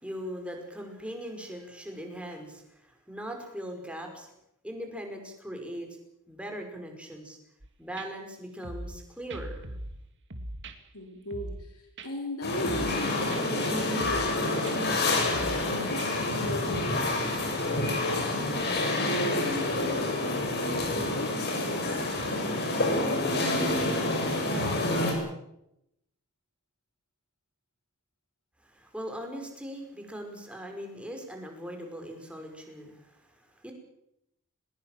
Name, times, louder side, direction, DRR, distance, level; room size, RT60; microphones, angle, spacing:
voice 1, 0.0-4.3 4.6-5.9 6.3-7.4 7.8-9.5 28.6-33.7, equal, 5° right, 3 dB, 5.4 m, -40 dB
sound 1, 7.6-7.7 8.0-8.1 8.6-9.0 9.3-10.0 10.3-10.8 11.3-11.7 12.0-12.1 12.6-13.0 13.3-13.4 14.0-14.3 14.6-14.8 15.3-15.7 16.0-16.1, right 1 dB, 55° right, 2.5 m, -40 dB
voice 2, 10.9-14.9 15.7-17.2 17.8-20.2 20.9-22.0 22.3-23.2, left 1 dB, 80° left, 2 dB, 4.0 m, -38 dB
sound 2, 12.4-25.1, left 2 dB, 50° left, 7.6 m, -28 dB
21.0 x 21.0 x 7.5 m, 0.80 s
head